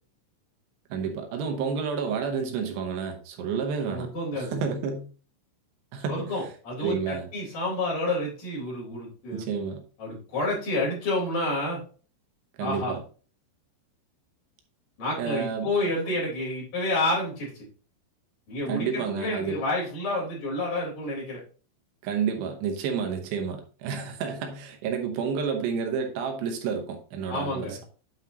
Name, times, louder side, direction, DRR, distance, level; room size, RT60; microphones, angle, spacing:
voice 1, 0.9-4.1 4.3-5.1 5.9-6.5 6.8-7.3 9.3-9.8 12.6-13.0 15.2-15.7 16.1-16.2 18.7-19.6 22.0-27.8, right 6 dB, 75° right, 2.8 m, -30 dB
voice 2, 3.9-4.6 6.1-9.5 10.0-11.8 12.6-12.9 15.0-17.6 18.5-21.4 27.3-27.8, left 2 dB, 45° left, 5.3 m, -29 dB
9.4 x 5.6 x 2.9 m
omnidirectional pair, 5.6 m